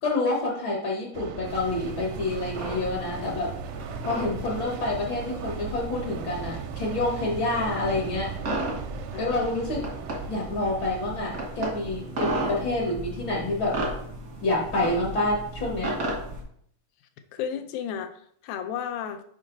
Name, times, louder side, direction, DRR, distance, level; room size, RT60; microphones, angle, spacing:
voice 1, 0.0-3.5 4.0-8.3 9.2-9.8 10.3-13.8 14.4-16.0, left 2 dB, 70° left, -1 dB, 1.1 m, -28 dB
sound 1, 1.1-13.3, right 7 dB, 85° right, 2.4 m, -39 dB
sound 2, 1.4-16.4, right 1 dB, 70° right, 0.8 m, -35 dB
voice 2, 12.2-12.5 17.3-19.2, left 8 dB, 90° left, 9 dB, 2.3 m, -34 dB
6.3 x 5.3 x 3.9 m, 0.65 s
omnidirectional pair, 4.0 m